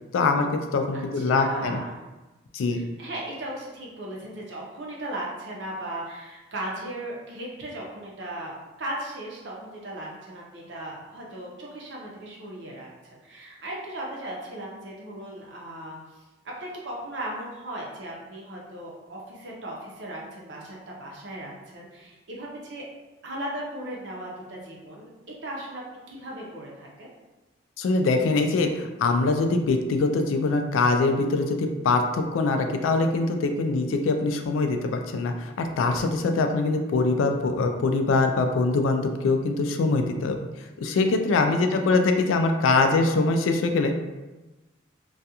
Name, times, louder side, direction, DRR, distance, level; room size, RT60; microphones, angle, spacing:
voice 1, 0.1-1.8 2.5-2.8 27.8-40.4 40.8-44.0, left 3 dB, 85° left, 5 dB, 0.3 m, -23 dB
voice 2, 0.9-2.0 2.7-16.2 16.6-22.8 23.2-25.1 25.4-25.8 26.1-27.1 41.5-42.0, right 1 dB, 65° right, -3 dB, 0.6 m, -37 dB
2.4 x 2.2 x 2.7 m, 1.1 s
head